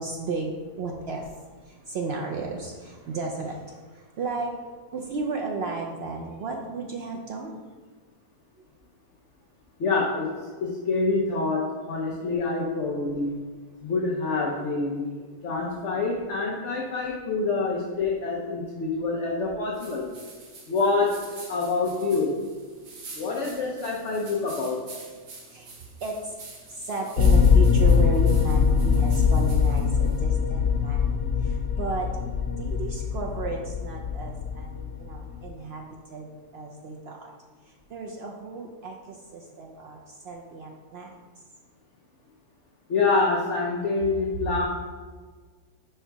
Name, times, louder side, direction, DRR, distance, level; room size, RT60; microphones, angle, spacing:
voice 1, 0.0-4.5 4.9-7.6 8.6-8.7 25.5-26.4 26.7-32.1 32.5-37.3 37.6-41.2, right 3 dB, 75° right, 0 dB, 0.5 m, -34 dB
voice 2, 9.8-10.3 10.6-13.4 13.8-15.1 15.4-20.1 20.7-21.2 21.5-22.4 23.1-24.8 42.9-44.7, left 3 dB, 60° left, -2 dB, 0.9 m, -26 dB
sound 1, 19.7-30.2, right 3 dB, 60° right, 1.4 m, -46 dB
sound 2, 27.2-35.5, left 6 dB, 80° left, 1.2 m, -22 dB
4.9 x 4.5 x 4.5 m, 1.5 s
omnidirectional pair, 1.7 m